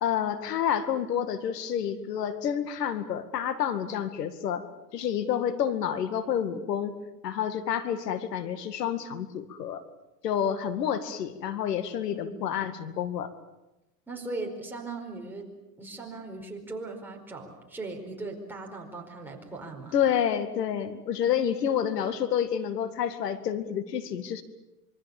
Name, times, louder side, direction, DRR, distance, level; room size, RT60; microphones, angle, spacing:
voice 1, 0.0-4.7 4.9-7.0 7.2-9.8 10.2-13.3 19.9-24.4, left 9 dB, 85° left, 11 dB, 2.1 m, -29 dB
voice 2, 12.1-12.5 14.1-15.5 15.8-20.0, right 3 dB, 5° right, -1 dB, 4.8 m, -39 dB
26.5 x 24.0 x 7.2 m, 1.0 s
supercardioid pair, 130°, 47 cm